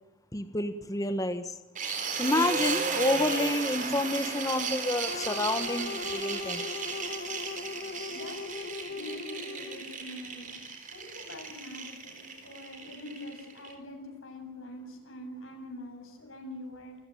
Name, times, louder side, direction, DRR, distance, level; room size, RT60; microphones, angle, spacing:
voice 1, 0.3-1.6 2.2-6.7, left 1 dB, 15° left, 9 dB, 1.3 m, -29 dB
sound 1, 1.8-13.7, right 4 dB, 40° right, 3.9 m, -35 dB
sound 2, 5.1-10.0, left 4 dB, 45° left, 1.4 m, -39 dB
voice 2, 8.1-10.6 10.9-17.0, left 1 dB, 90° left, 3 dB, 7.8 m, -44 dB
28.0 x 15.0 x 9.2 m, 0.97 s
head